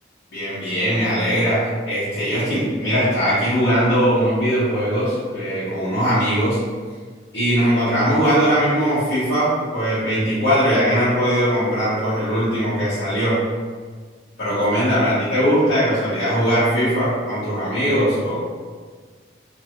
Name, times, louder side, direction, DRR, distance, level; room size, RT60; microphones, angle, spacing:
voice 1, 0.3-6.6 7.3-13.4 14.4-18.4, equal, 60° left, -14 dB, 1.1 m, -20 dB
3.0 x 2.6 x 2.8 m, 1.5 s
head